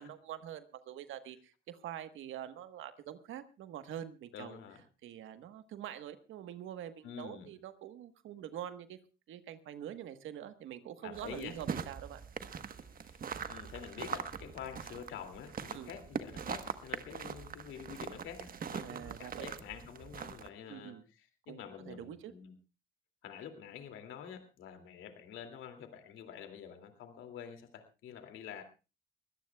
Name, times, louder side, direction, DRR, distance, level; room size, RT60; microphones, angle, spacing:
voice 1, 0.0-4.6 5.0-9.0 9.3-12.2 15.7-15.9 18.8-19.5 20.7-21.0 21.5-22.3, right 11 dB, 85° right, 10 dB, 1.3 m, -45 dB
voice 2, 4.3-4.8 7.0-7.5 11.0-11.5 12.9-13.2 13.5-22.6 23.2-28.6, left 8 dB, 85° left, 6 dB, 2.6 m, -47 dB
sound 1, 11.1-20.5, right 7 dB, 45° right, 1.2 m, -42 dB
22.5 x 17.0 x 2.3 m, 0.31 s
cardioid pair, 90°, 20 cm